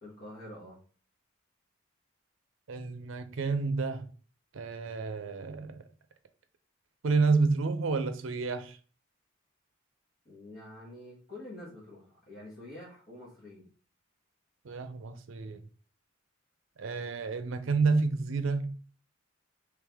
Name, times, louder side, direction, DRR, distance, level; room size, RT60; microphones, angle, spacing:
voice 1, 0.0-0.8 10.2-13.7, left 1 dB, 45° left, 1.3 m, -47 dB
voice 2, 2.7-4.1 4.5-5.8 7.0-8.8 14.6-15.6 16.8-18.8, right 4 dB, 70° right, 0.5 m, -29 dB
3.3 x 3.2 x 3.5 m
head